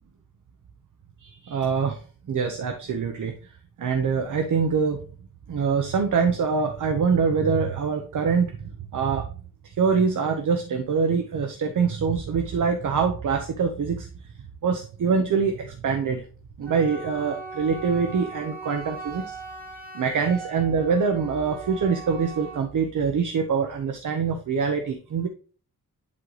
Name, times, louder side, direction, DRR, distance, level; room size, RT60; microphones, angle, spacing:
voice 1, 1.2-2.0 2.3-3.3 3.8-5.0 5.5-9.3 9.6-14.1 14.6-16.2 16.6-19.4 19.9-25.3, right 5 dB, 65° right, 5 dB, 0.9 m, -24 dB
Wind instrument woodwind instrument, 16.6-22.7, right 4 dB, 25° right, 1.8 m, -39 dB
11.0 x 3.9 x 3.2 m, 0.39 s
wide cardioid pair, 160°, 33 cm